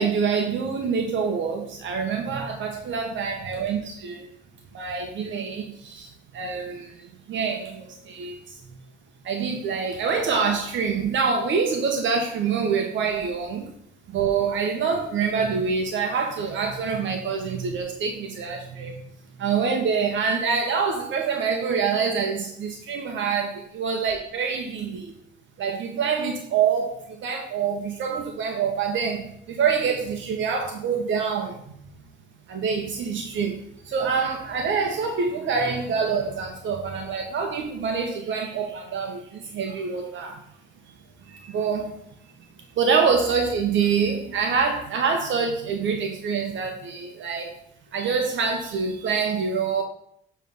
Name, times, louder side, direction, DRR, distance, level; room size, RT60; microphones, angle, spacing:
voice 1, 0.0-4.3 4.7-6.1 6.3-6.9 7.3-8.4 9.3-13.6 14.1-18.9 19.4-25.1 25.6-31.5 32.5-33.6 33.9-40.4 41.5-41.9 42.8-47.5 47.9-49.8, right 5 dB, 70° right, 3 dB, 0.9 m, -26 dB
7.4 x 3.3 x 5.2 m, 0.68 s
cardioid pair, 90°, 20 cm